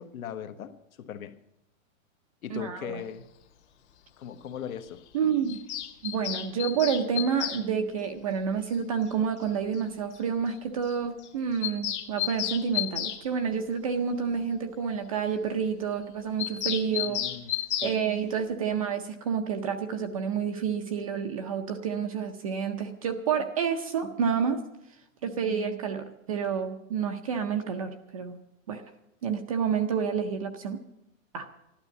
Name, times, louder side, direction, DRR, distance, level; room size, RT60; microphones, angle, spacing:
voice 1, 0.0-1.4 2.4-3.3 4.2-5.0 17.0-18.0, left 9 dB, 80° left, 1.3 m, -39 dB
voice 2, 2.5-3.0 5.1-5.6 6.0-17.2 17.8-24.6 25.2-28.4 28.7-28.8 29.2-30.8 31.3-31.5, right 7 dB, 25° right, 0.6 m, -29 dB
Bird vocalization bird call bird song, 5.5-7.6 9.1-9.2 9.4-9.5 9.7-9.8 10.1-10.2 10.5-10.6 10.8-11.0 11.2-13.2 16.4-18.0, left 12 dB, 55° left, 1.8 m, -32 dB
13.0 x 12.0 x 7.1 m
hypercardioid pair, 170°, 42 cm